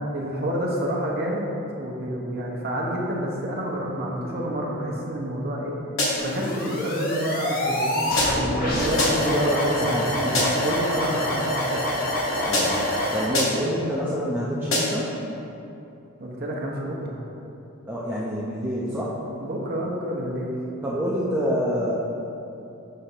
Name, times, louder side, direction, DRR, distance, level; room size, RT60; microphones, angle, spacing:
voice 1, 0.1-1.5 1.8-5.8 6.2-10.0 10.6-11.8 16.2-17.2 19.4-20.5, equal, 45° right, -3 dB, 1.0 m, -29 dB
sound 1, 6.0-6.4 8.2-8.6 9.0-9.4 10.3-10.8 12.5-13.0 13.3-13.8 14.7-15.1, left 1 dB, 65° left, 1.5 m, -25 dB
sound 2, 6.2-13.3, left 1 dB, 45° left, 1.0 m, -26 dB
voice 2, 8.7-10.6 12.4-15.1 17.9-19.2 20.8-21.9, equal, 10° right, -8 dB, 0.6 m, -27 dB
6.6 x 3.5 x 5.7 m, 2.8 s
head